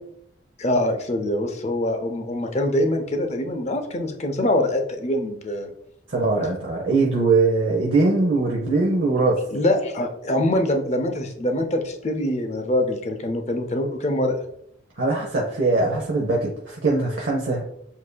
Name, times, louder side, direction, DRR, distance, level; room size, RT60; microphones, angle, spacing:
voice 1, 0.6-5.7 9.5-14.4, left 1 dB, 35° left, 4 dB, 0.5 m, -24 dB
voice 2, 6.1-9.4 15.0-17.7, right 3 dB, 65° right, -3 dB, 0.7 m, -21 dB
7.3 x 2.6 x 2.2 m, 0.77 s
head